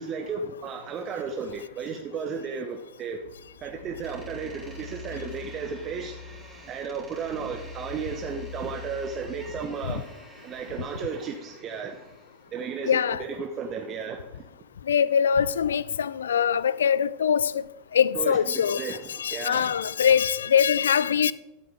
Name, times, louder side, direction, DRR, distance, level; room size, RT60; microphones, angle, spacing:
voice 1, 0.0-3.2 3.6-6.2 6.7-10.1 10.4-12.0 12.5-14.3 18.2-18.4 18.8-19.7, right 5 dB, 30° right, 0.9 m, -34 dB
sound 1, 3.2-9.5, left 5 dB, 60° right, 2.4 m, -44 dB
Door, 4.0-12.5, right 2 dB, 10° right, 3.8 m, -49 dB
voice 2, 12.8-13.2 14.9-17.6 17.9-21.3, left 8 dB, 65° left, 0.4 m, -23 dB
13.0 x 8.3 x 3.6 m
figure-of-eight pair, 90°, 0 cm